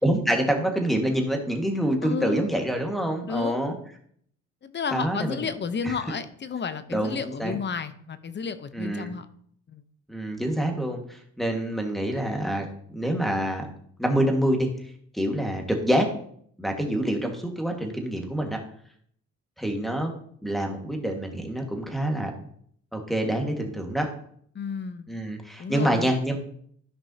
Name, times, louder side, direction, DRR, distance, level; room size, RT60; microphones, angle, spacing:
voice 1, 0.0-3.7 4.9-5.5 5.8-6.0 6.9-7.6 8.7-9.1 10.1-13.7 14.0-16.1 16.6-18.6 19.6-20.1 20.4-22.5 22.9-24.1 25.1-26.4, right 1 dB, ahead, 3 dB, 1.6 m, -26 dB
voice 2, 2.0-2.5 3.3-3.6 4.6-9.3 9.7-9.8 24.5-25.1 25.6-26.1, left 6 dB, 35° left, 12 dB, 0.8 m, -32 dB
13.5 x 5.3 x 2.8 m, 0.63 s
cardioid pair, 90°, 30 cm